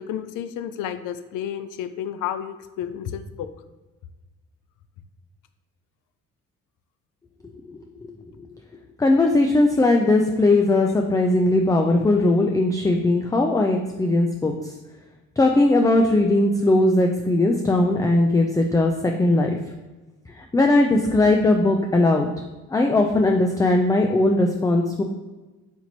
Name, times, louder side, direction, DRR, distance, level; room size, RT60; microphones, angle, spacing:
voice 1, 0.0-3.5 10.2-10.3, left 9 dB, 85° left, 10 dB, 0.5 m, -31 dB
voice 2, 9.0-14.7 15.4-19.6 20.4-22.3 22.7-25.0, left 2 dB, 10° left, 2 dB, 0.4 m, -19 dB
4.4 x 2.9 x 4.0 m, 1.2 s
cardioid pair, 90°, 30 cm